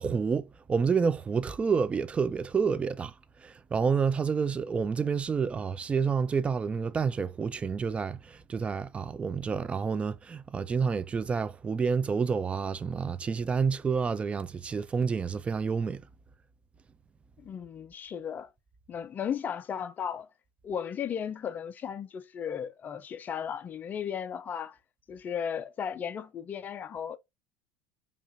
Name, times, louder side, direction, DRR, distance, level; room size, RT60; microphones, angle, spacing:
voice 1, 0.0-3.1 3.4-16.0, right 5 dB, 20° right, 0.4 m, -29 dB
voice 2, 17.4-18.5 18.9-20.3 20.6-24.8 25.1-27.2, left 8 dB, 30° left, 0.6 m, -35 dB
5.0 x 2.5 x 2.7 m
supercardioid pair, 120°, 6 cm